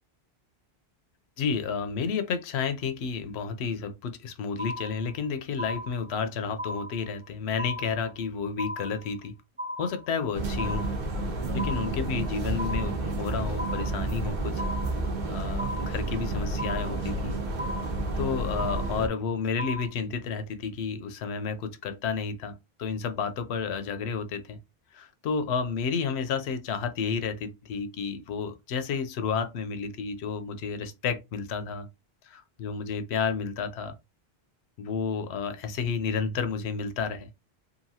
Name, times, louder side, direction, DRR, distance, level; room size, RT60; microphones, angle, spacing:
voice 1, 1.4-9.3 9.8-10.9 11.5-14.7 15.3-17.4 18.2-24.6 24.9-31.9 32.2-34.0 34.8-37.3, left 5 dB, 85° left, 0.8 m, -31 dB
sound 1, 4.6-5.2 5.6-6.2 6.6-7.2 7.6-8.2 8.6-9.2 9.6-10.3 10.6-11.2 11.6-12.2 12.6-13.2 13.6-14.2 14.6-15.2 15.6-16.2 16.6-17.2 17.6-18.2 18.6-19.2 19.6-19.9, left 1 dB, 15° right, 0.3 m, -37 dB
sound 2, 10.3-19.1, right 2 dB, 50° right, 0.8 m, -30 dB
2.9 x 2.6 x 2.7 m
omnidirectional pair, 1.1 m